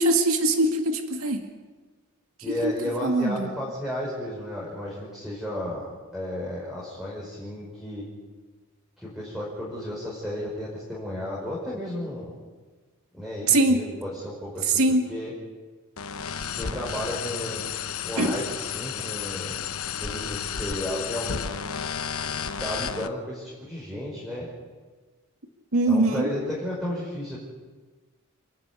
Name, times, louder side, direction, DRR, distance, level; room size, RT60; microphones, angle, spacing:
voice 1, 0.0-1.4 2.6-2.7 3.0-3.5 13.5-13.8 14.7-15.0 18.2-18.4 25.7-26.2, right 2 dB, 75° right, 5 dB, 2.2 m, -21 dB
voice 2, 2.4-8.0 9.0-12.3 13.1-15.3 16.5-17.6 18.0-19.6 19.9-21.4 22.6-24.5 25.9-27.4, left 1 dB, ahead, -6 dB, 5.5 m, -33 dB
sound 1, 16.0-23.1, left 7 dB, 80° left, 0.9 m, -32 dB
29.0 x 12.0 x 9.8 m, 1.3 s
head